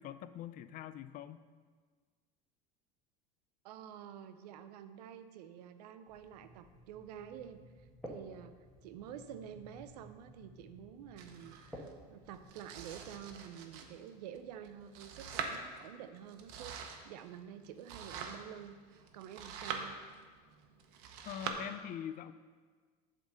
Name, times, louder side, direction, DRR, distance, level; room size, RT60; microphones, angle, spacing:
voice 1, 0.0-1.4 21.2-22.3, left 10 dB, 45° left, 12 dB, 0.4 m, -43 dB
voice 2, 3.6-8.6 8.8-20.0, right 9 dB, 90° right, 10 dB, 0.6 m, -49 dB
sound 1, 6.1-13.4, equal, 5° left, 1.5 m, -54 dB
Domestic sounds home sounds, 11.2-21.5, right 6 dB, 70° right, 0.9 m, -46 dB
8.0 x 3.8 x 6.6 m, 1.5 s
supercardioid pair, 105°, 20 cm